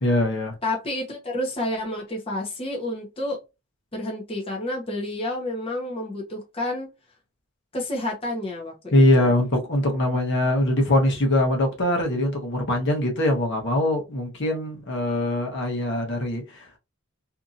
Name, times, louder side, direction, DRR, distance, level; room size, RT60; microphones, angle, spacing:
voice 1, 0.0-0.5 8.9-16.8, left 1 dB, 55° left, 1.0 m, -22 dB
voice 2, 0.6-3.4 3.9-6.9 7.7-9.3, left 1 dB, 25° left, 0.9 m, -30 dB
2.8 x 2.6 x 2.5 m
head